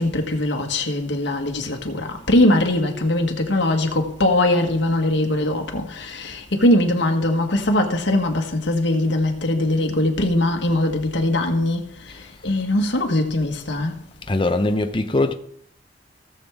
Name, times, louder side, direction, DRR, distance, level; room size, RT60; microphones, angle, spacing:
voice 1, 0.0-14.0, left 1 dB, 70° left, 1.5 m, -21 dB
voice 2, 14.3-15.3, left 2 dB, 25° left, 0.7 m, -21 dB
17.5 x 7.0 x 3.6 m
head